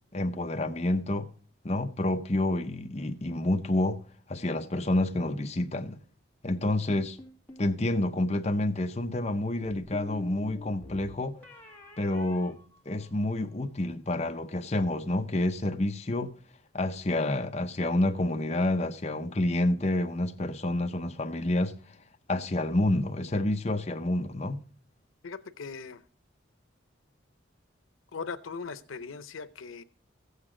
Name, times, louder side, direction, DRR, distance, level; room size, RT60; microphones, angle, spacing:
voice 1, 0.1-1.3 1.6-4.0 4.3-6.0 6.4-7.2 7.6-11.4 12.0-12.6 12.9-16.3 16.7-21.8 22.3-24.7, left 1 dB, 35° left, 0.7 m, -28 dB
sound 1, 7.2-7.7 9.6-13.4, left 1 dB, 10° left, 2.0 m, -47 dB
voice 2, 25.2-26.0 28.1-29.8, left 5 dB, 90° left, 0.7 m, -39 dB
14.5 x 8.2 x 3.8 m
head